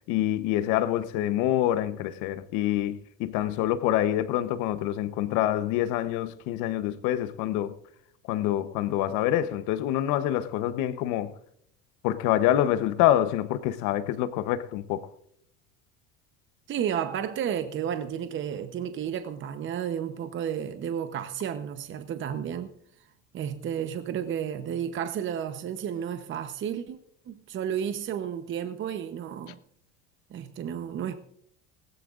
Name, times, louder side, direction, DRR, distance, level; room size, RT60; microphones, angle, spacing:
voice 1, 0.1-7.8 8.3-11.3 12.0-15.1, left 12 dB, 75° left, 1.0 m, -26 dB
voice 2, 16.7-22.7 23.3-27.0 27.3-29.6 30.3-31.2, right 9 dB, 40° right, 0.9 m, -32 dB
19.5 x 16.0 x 2.5 m
supercardioid pair, 110°, 30 cm